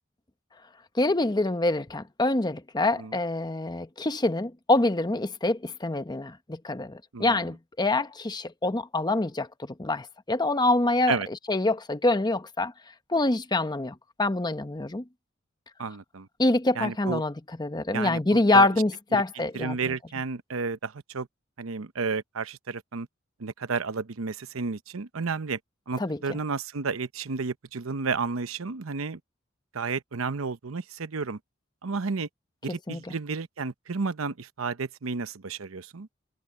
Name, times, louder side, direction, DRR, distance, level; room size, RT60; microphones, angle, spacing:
voice 1, 1.0-9.5 9.8-11.2 11.5-12.7 13.1-15.0 16.4-19.9 26.0-26.4 32.9-33.0, left 2 dB, 20° left, 0.9 m, -25 dB
voice 2, 15.8-16.3 16.8-17.2 17.9-18.7 19.1-19.2 19.5-21.3 21.6-23.1 23.4-25.6 25.9-29.2 29.7-31.4 31.8-32.3 32.6-36.1, right 4 dB, 90° right, 0.8 m, -32 dB
head